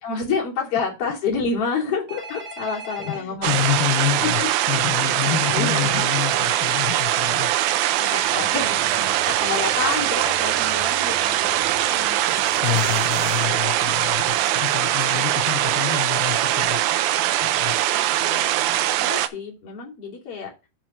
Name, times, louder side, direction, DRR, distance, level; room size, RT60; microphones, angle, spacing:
voice 1, 0.0-3.6 4.2-4.5 5.0-6.0 6.7-7.0 8.0-12.2 13.2-13.3 14.1-14.5 18.2-20.5, left 5 dB, 40° left, 3.6 m, -29 dB
Telephone, 2.1-3.2 6.1-7.2, right 2 dB, 20° right, 1.1 m, -37 dB
voice 2, 3.0-4.4 4.7-7.5 12.6-16.8 17.4-17.7, left 13 dB, 80° left, 2.9 m, -27 dB
water stream busy nearby from hill, 3.4-19.3, right 13 dB, 80° right, 2.4 m, -22 dB
sound 1, 8.2-14.3, right 5 dB, 60° right, 2.4 m, -39 dB
7.4 x 4.6 x 6.2 m
omnidirectional pair, 4.4 m